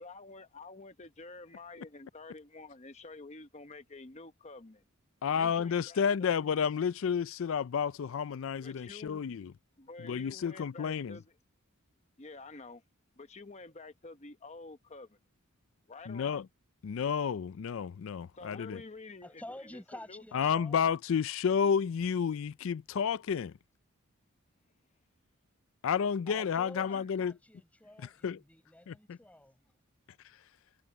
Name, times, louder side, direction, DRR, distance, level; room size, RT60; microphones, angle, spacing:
voice 1, 0.0-4.8 5.3-6.5 8.6-9.3 9.8-11.3 12.2-12.8 13.2-15.2 15.9-16.4 18.4-19.4 19.7-20.2 26.8-27.0, left 3 dB, 30° left, 0.9 m, -49 dB
voice 2, 5.2-9.5 10.1-11.2 16.1-16.5 16.8-18.8 20.3-23.5 25.8-27.3 28.2-28.4 28.9-29.2, left 7 dB, 60° left, 0.4 m, -31 dB
voice 3, 19.2-20.9 26.3-29.7, left 1 dB, 5° left, 6.3 m, -50 dB
head